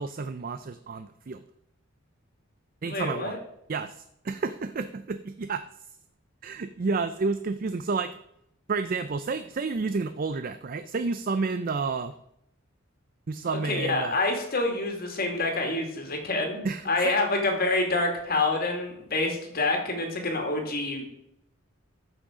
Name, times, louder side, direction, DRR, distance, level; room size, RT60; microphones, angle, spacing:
voice 1, 0.0-1.4 2.8-3.4 3.7-5.6 6.4-8.1 8.7-12.1 13.3-14.2 16.6-17.2, right 4 dB, 45° right, 11 dB, 0.4 m, -30 dB
voice 2, 2.8-3.4 13.4-16.6 16.9-21.0, left 2 dB, 45° left, 3 dB, 2.2 m, -27 dB
13.5 x 6.3 x 4.9 m, 0.78 s
head